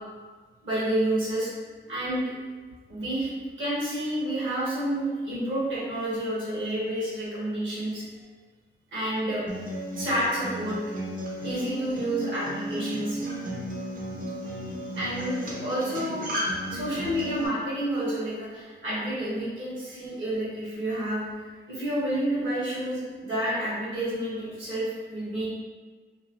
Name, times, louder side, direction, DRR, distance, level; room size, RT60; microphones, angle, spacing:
voice 1, 0.6-1.5 1.9-2.2 2.9-3.3 3.6-8.0 8.9-9.4 10.0-10.8 11.4-13.2 14.5-14.6 14.9-16.3 16.7-25.5, right 1 dB, 70° right, -8 dB, 1.3 m, -29 dB
Acoustic guitar, 9.5-17.5, equal, 40° right, 0.6 m, -34 dB
2.9 x 2.1 x 2.9 m, 1.4 s
wide cardioid pair, 150°, 21 cm